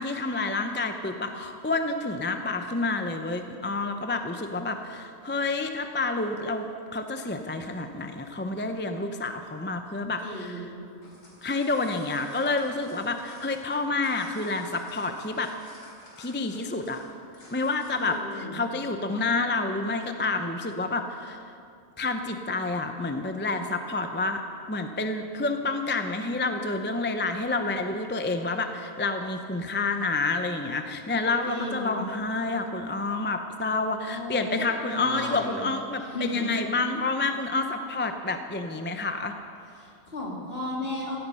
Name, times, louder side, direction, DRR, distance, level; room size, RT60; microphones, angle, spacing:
voice 1, 0.0-10.7 11.4-15.5 16.2-17.0 17.5-21.4 22.0-24.4 24.7-39.4, left 3 dB, 15° left, 6 dB, 0.4 m, -29 dB
voice 2, 10.2-10.8 17.9-18.6 31.5-32.1 34.1-35.6 36.1-36.5 39.8-41.2, left 2 dB, 40° left, -2 dB, 2.8 m, -34 dB
sound 1, 10.9-18.2, left 1 dB, 85° left, 4.4 m, -52 dB
16.5 x 13.5 x 5.6 m, 2.5 s
omnidirectional pair, 1.5 m